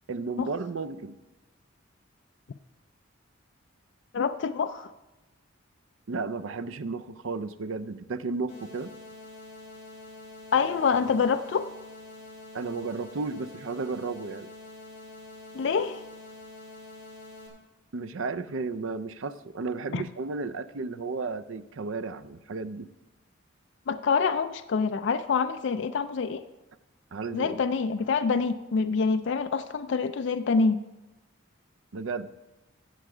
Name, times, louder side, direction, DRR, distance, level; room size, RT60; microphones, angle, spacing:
voice 1, 0.1-1.1 6.1-8.9 12.5-14.5 17.9-22.9 27.1-27.6 31.9-32.3, right 4 dB, 75° right, 11 dB, 0.5 m, -33 dB
voice 2, 4.1-4.9 10.5-11.7 15.5-16.0 19.9-20.0 23.9-26.4 27.3-30.8, left 5 dB, 60° left, 9 dB, 0.4 m, -26 dB
sound 1, 8.5-17.5, left 2 dB, 35° left, 3.2 m, -46 dB
16.0 x 6.5 x 4.9 m, 1.0 s
head